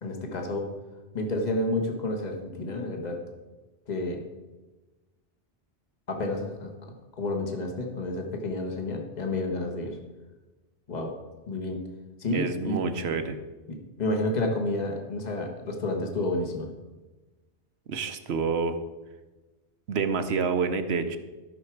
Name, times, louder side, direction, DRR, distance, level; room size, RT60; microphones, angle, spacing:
voice 1, 0.0-0.7 1.1-3.2 3.9-4.2 6.1-6.7 7.2-10.0 10.9-11.1 11.5-11.8 12.2-12.8 13.7-16.7, left 2 dB, 40° left, 3 dB, 1.4 m, -30 dB
voice 2, 12.3-13.4 17.9-18.8 19.9-21.2, right 5 dB, 70° right, 9 dB, 1.0 m, -28 dB
13.5 x 6.0 x 4.6 m, 1.2 s
omnidirectional pair, 1.1 m